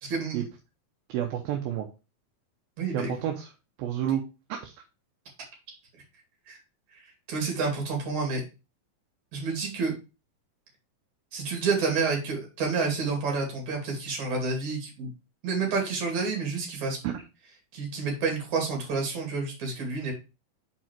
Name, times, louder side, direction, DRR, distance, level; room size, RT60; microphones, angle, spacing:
voice 1, 0.0-0.4 2.8-3.1 6.5-6.6 6.9-8.4 9.3-10.0 11.3-15.1 15.4-17.0 17.7-20.1, right 4 dB, 55° right, 1 dB, 3.5 m, -29 dB
voice 2, 1.1-1.9 2.9-3.5 3.8-4.2 4.5-4.7 17.0-17.1, right 10 dB, 80° right, 3 dB, 2.5 m, -29 dB
5.7 x 4.6 x 4.4 m, 0.29 s
omnidirectional pair, 4.2 m